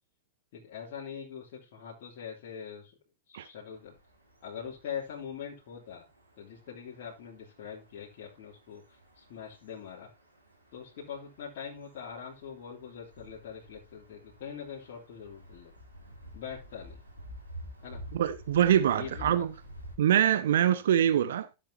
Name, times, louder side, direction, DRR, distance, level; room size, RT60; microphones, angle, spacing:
voice 1, 0.5-2.9 3.3-3.9 4.4-6.0 6.4-10.1 10.7-15.7 16.3-17.0 17.8-18.0 18.9-19.5, left 7 dB, 50° left, 3.0 m, -43 dB
sound 1, 3.7-20.0, equal, 85° right, 3.4 m, -51 dB
voice 2, 18.1-19.5 20.0-21.5, right 10 dB, 60° right, 0.7 m, -24 dB
13.5 x 7.4 x 2.9 m
figure-of-eight pair, 90°, 0 cm